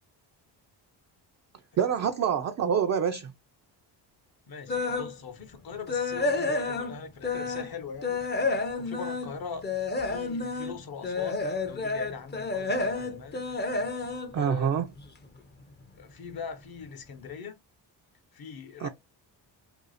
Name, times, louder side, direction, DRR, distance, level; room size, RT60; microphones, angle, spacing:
voice 1, 1.8-3.3 14.3-14.9 18.8-18.9, right 7 dB, 40° right, 0.4 m, -26 dB
voice 2, 4.5-8.2 8.8-9.7 10.0-13.4 14.3-14.7 16.0-17.6 18.3-18.9, left 6 dB, 50° left, 0.8 m, -41 dB
sound 1, 4.7-5.1 5.5-7.7 8.0-15.2 15.6-15.9 16.3-16.4 16.8-16.9, left 3 dB, 25° left, 0.5 m, -30 dB
2.6 x 2.4 x 4.0 m
cardioid pair, 75°, 47 cm